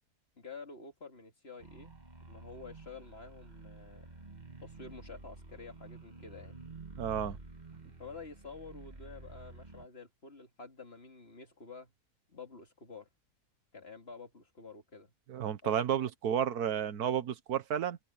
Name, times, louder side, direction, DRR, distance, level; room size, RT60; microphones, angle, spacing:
voice 1, 0.4-1.9 2.2-4.1 4.6-6.6 8.0-11.9 12.3-13.1 13.7-15.1 15.6-15.7, left 4 dB, 40° left, 2.7 m, -49 dB
sound 1, 1.6-9.9, right 3 dB, 30° right, 1.8 m, -50 dB
voice 2, 7.0-7.4 15.3-18.0, right 9 dB, 75° right, 1.5 m, -32 dB
omnidirectional pair, 1.6 m